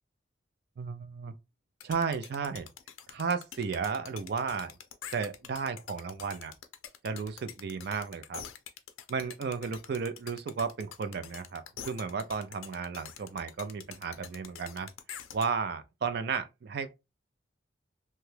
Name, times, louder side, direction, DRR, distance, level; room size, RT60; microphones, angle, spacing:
voice 1, 0.8-1.3 1.8-2.7 3.1-4.7 5.1-6.5 7.0-8.4 9.1-14.9 15.3-17.0, right 5 dB, 50° right, 0.4 m, -34 dB
sound 1, 1.8-15.5, left 9 dB, 85° left, 0.4 m, -45 dB
2.8 x 2.2 x 3.1 m
head